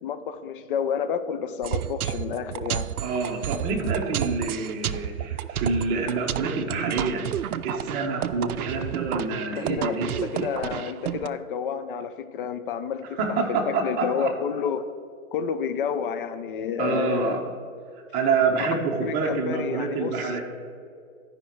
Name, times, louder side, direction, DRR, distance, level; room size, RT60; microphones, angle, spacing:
voice 1, 0.0-2.9 9.6-13.2 13.5-14.8 15.3-17.4 18.6-18.7 19.0-20.3, left 7 dB, 40° left, 11 dB, 0.5 m, -30 dB
sound 1, 1.6-11.3, right 10 dB, 90° right, 0.5 m, -31 dB
voice 2, 3.0-7.3 7.6-10.5 13.2-14.3 16.8-17.4 18.1-20.4, right 4 dB, 20° right, 1 dB, 1.0 m, -27 dB
12.5 x 5.2 x 4.6 m, 2.4 s
hypercardioid pair, 135°, 42 cm